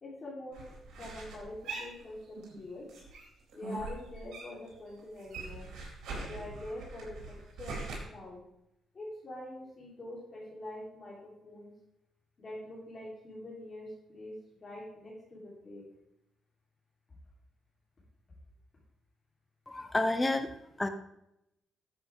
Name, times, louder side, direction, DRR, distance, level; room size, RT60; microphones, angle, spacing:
voice 1, 0.0-0.6 1.0-2.9 3.5-5.7 6.2-8.4 8.9-11.7 12.4-15.9, left 1 dB, 40° left, -5 dB, 3.8 m, -45 dB
sound 1, 0.5-2.6 2.9-4.7 5.0-8.0, right 3 dB, 80° right, 4.2 m, -42 dB
voice 2, 19.7-20.9, left 2 dB, 15° left, 9 dB, 0.9 m, -30 dB
12.0 x 8.0 x 3.7 m, 0.81 s
cardioid pair, 90°, 0 cm